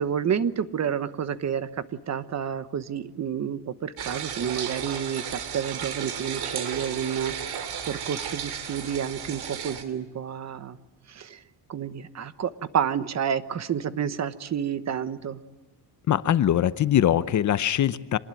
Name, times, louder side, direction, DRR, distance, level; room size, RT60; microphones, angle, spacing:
voice 1, 0.0-1.7 2.1-10.8 11.1-11.4 11.7-15.4, right 8 dB, 40° right, 13 dB, 1.1 m, -30 dB
sound 1, 4.0-9.8, right 8 dB, 60° right, 3.1 m, -34 dB
voice 2, 16.1-18.2, left 10 dB, 40° left, 14 dB, 0.8 m, -22 dB
26.5 x 20.0 x 9.0 m, 1.2 s
cardioid pair, 140°, 43 cm